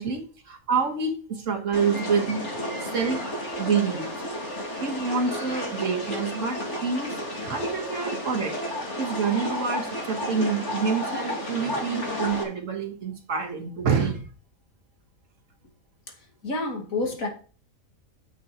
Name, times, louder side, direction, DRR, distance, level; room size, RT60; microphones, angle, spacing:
voice 1, 0.0-4.1 4.8-8.6 9.0-14.3, right 5 dB, 65° right, 4 dB, 1.9 m, -27 dB
sound 1, 1.7-12.4, left 1 dB, 55° left, 3.4 m, -32 dB
voice 2, 16.4-17.3, left 2 dB, 75° left, 2 dB, 2.6 m, -28 dB
9.5 x 7.2 x 4.3 m, 0.39 s
omnidirectional pair, 1.5 m